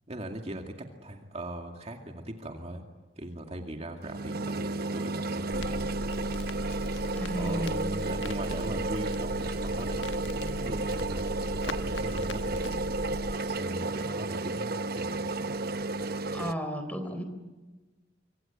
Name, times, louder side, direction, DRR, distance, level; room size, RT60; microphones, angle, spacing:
voice 1, 0.1-0.7 1.0-2.9 3.2-6.1 7.4-12.8 13.4-15.2, right 1 dB, 35° right, 3 dB, 2.4 m, -39 dB
sound 1, 4.0-16.5, right 2 dB, 55° right, 0.9 m, -32 dB
Crackle, 5.5-13.4, left 1 dB, 85° left, 1.4 m, -38 dB
voice 2, 7.1-7.8 16.3-17.2, equal, 10° left, 8 dB, 4.0 m, -33 dB
26.0 x 25.5 x 9.0 m, 1.2 s
head